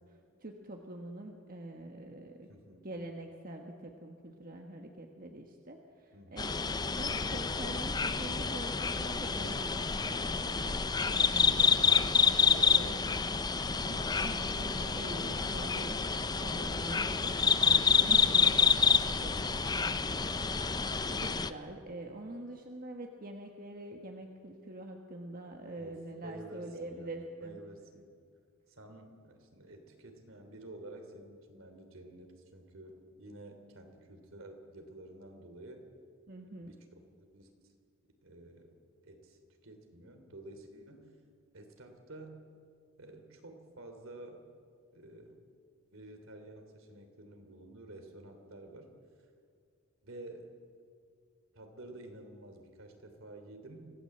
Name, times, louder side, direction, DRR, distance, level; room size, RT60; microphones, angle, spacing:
voice 1, 0.4-2.5 2.8-6.6 6.9-11.6 12.7-13.0 13.8-16.0 16.4-27.6 36.3-36.8, right 1 dB, 40° right, 2 dB, 1.5 m, -45 dB
voice 2, 2.5-2.9 6.1-6.7 11.4-12.2 12.4-13.5 14.4-14.7 25.8-28.1 28.7-35.8 36.4-37.5 38.2-38.8 39.0-41.0 41.5-42.4 43.0-44.4 44.9-45.3 45.9-48.9 50.0-50.5 51.5-53.9, right 1 dB, 70° right, 5 dB, 3.1 m, -51 dB
sound 1, 6.4-21.5, left 5 dB, 20° left, 0.5 m, -28 dB
25.5 x 17.0 x 7.8 m, 2.2 s
head